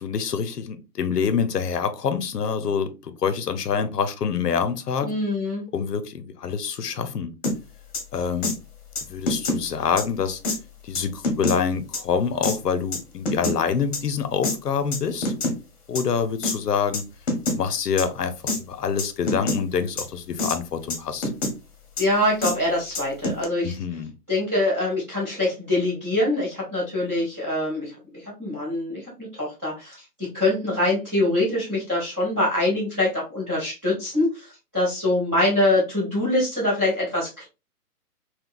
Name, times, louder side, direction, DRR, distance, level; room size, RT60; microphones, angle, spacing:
voice 1, 0.0-5.1 5.7-7.3 8.1-8.5 9.1-10.4 10.8-15.3 15.9-17.0 17.5-21.3 23.6-24.1, left 6 dB, 80° left, 0.7 m, -26 dB
voice 2, 5.0-5.7 22.0-23.8 24.3-37.5, left 1 dB, 10° right, 0.8 m, -24 dB
sound 1, 7.4-7.6 7.9-8.0 8.4-8.5 8.9-9.6 10.0-10.1 10.4-10.6 10.9-11.6 11.9-12.0 12.4-12.6 12.9-13.6 13.9-14.0 14.4-14.5 14.9-15.6 15.9-16.0 16.4-16.6 16.9-17.0 17.3-17.6 18.0-18.1 18.5-18.6 19.0-19.6 20.0-20.1 20.4-20.6 20.9-21.5 22.0-22.1 22.4-22.5 22.9-23.4, left 2 dB, 45° left, 1.0 m, -25 dB
3.7 x 2.3 x 2.4 m
hypercardioid pair, 155°, 47 cm